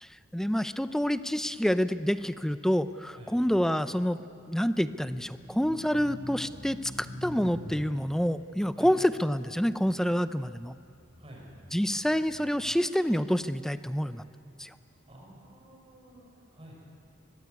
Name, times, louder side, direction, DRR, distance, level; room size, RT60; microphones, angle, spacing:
voice 1, 0.0-4.2 4.5-10.7 11.7-14.2 14.6-14.7, equal, ahead, 12 dB, 0.6 m, -28 dB
sound 1, 4.7-10.2 10.8-12.6, left 1 dB, 90° right, 7.6 m, -45 dB
voice 2, 15.1-16.8, right 1 dB, 30° right, -2 dB, 7.1 m, -50 dB
24.0 x 22.0 x 9.6 m, 2.5 s
head